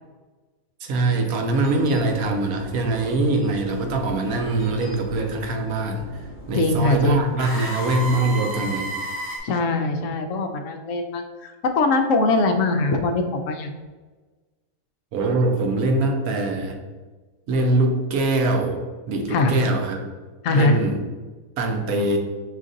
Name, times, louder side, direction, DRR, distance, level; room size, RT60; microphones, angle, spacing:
voice 1, 0.8-6.1 6.5-8.9 15.1-16.8 17.5-18.8 19.1-20.0 20.5-21.0 21.6-22.2, right 2 dB, 80° right, 3 dB, 1.1 m, -23 dB
sound 1, 1.5-9.4, right 1 dB, 15° left, 0.6 m, -35 dB
voice 2, 6.5-7.2 9.4-13.7 19.3-19.5 20.4-20.8, left 3 dB, 70° left, 5 dB, 0.8 m, -21 dB
5.1 x 2.5 x 3.8 m, 1.3 s
omnidirectional pair, 1.5 m